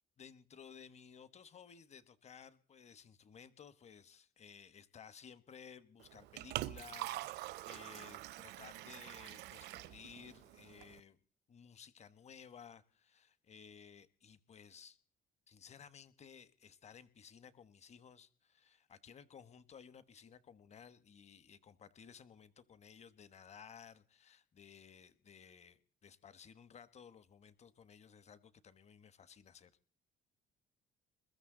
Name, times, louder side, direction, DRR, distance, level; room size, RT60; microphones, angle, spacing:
voice 1, 0.2-11.2 11.5-15.0 15.5-29.7, left 7 dB, 40° left, 15 dB, 1.3 m, -57 dB
Liquid, 6.0-11.0, right 16 dB, 80° right, 0.6 m, -45 dB
21.5 x 14.0 x 3.9 m, 0.42 s
cardioid pair, 110°, 17 cm